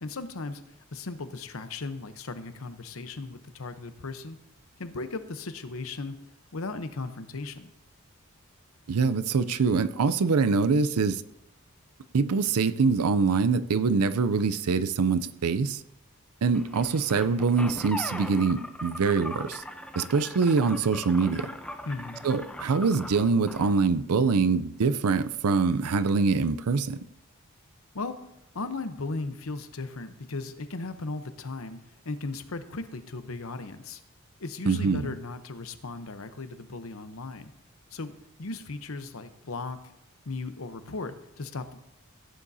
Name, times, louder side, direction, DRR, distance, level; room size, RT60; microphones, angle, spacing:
voice 1, 0.0-0.6 0.9-4.4 4.8-6.2 6.5-7.7 21.8-22.2 27.9-28.2 28.5-34.0 34.4-37.5 37.9-38.1 38.4-39.8 40.3-41.8, left 3 dB, 70° left, 0.8 m, -36 dB
voice 2, 8.9-11.2 12.1-15.8 16.4-19.6 20.0-21.5 22.2-27.0 34.7-35.1, right 4 dB, 90° right, 0.5 m, -24 dB
sound 1, 16.5-23.8, left 1 dB, 5° left, 0.6 m, -40 dB
16.0 x 9.9 x 2.7 m
head